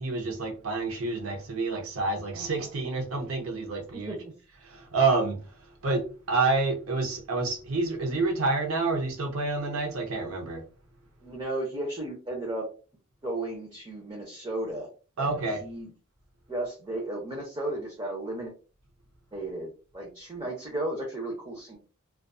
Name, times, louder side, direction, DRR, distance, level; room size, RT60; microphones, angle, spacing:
voice 1, 0.0-4.2 4.6-5.5 5.8-10.6 15.2-15.6, right 3 dB, 70° right, 0.6 m, -28 dB
voice 2, 11.2-12.7 13.2-14.9 15.2-15.9 16.5-18.5 19.3-21.8, right 1 dB, 20° right, 0.6 m, -34 dB
2.5 x 2.3 x 2.3 m
head